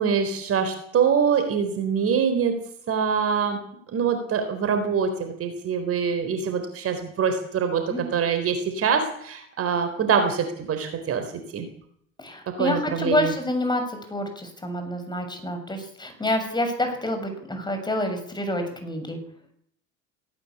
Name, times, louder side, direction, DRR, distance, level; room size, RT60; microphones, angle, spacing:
voice 1, 0.0-2.6 2.9-3.6 3.9-11.2 11.5-11.7 12.5-13.3, right 6 dB, 35° right, 7 dB, 4.0 m, -24 dB
voice 2, 12.2-19.2, left 1 dB, 10° left, 6 dB, 6.7 m, -28 dB
18.0 x 17.0 x 8.5 m, 0.67 s
figure-of-eight pair, 70°, 40 cm